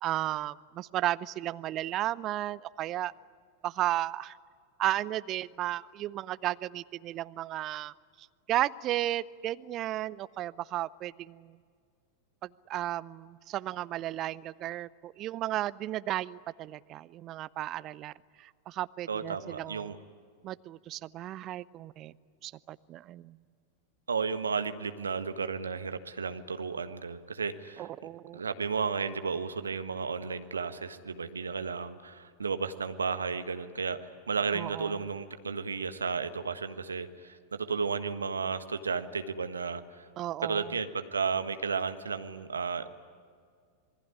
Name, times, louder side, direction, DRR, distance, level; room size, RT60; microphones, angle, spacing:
voice 1, 0.0-3.1 3.6-4.4 4.8-11.5 12.4-20.0 20.4-22.1 22.4-23.4 27.8-28.4 34.5-35.0 40.2-40.8, right 14 dB, 35° right, 18 dB, 0.6 m, -34 dB
voice 2, 19.1-20.0 24.1-27.9 28.3-40.1 40.4-42.9, right 5 dB, 75° right, 10 dB, 1.5 m, -33 dB
27.0 x 21.0 x 9.9 m, 2.1 s
figure-of-eight pair, 90°, 0 cm